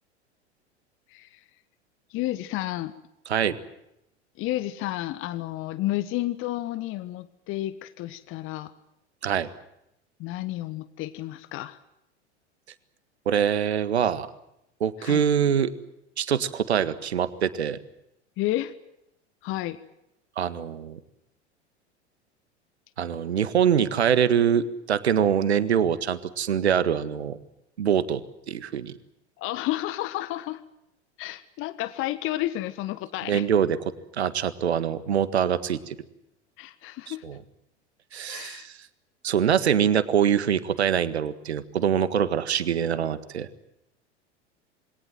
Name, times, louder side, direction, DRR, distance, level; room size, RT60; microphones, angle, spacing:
voice 1, 2.1-2.9 4.4-8.7 10.2-11.8 15.0-15.2 18.4-18.7 19.4-19.8 29.4-30.6 31.2-33.4 36.6-37.2 38.3-38.7, left 15 dB, 35° left, 15 dB, 1.4 m, -31 dB
voice 2, 3.3-3.6 9.2-9.5 13.3-14.3 14.8-15.7 16.2-17.8 20.4-21.0 23.0-27.4 27.8-28.2 28.5-28.9 33.3-36.0 37.1-37.4 38.1-38.7 39.2-43.5, right 8 dB, 70° right, 14 dB, 1.8 m, -24 dB
27.5 x 22.0 x 7.7 m, 0.83 s
figure-of-eight pair, 80°, 34 cm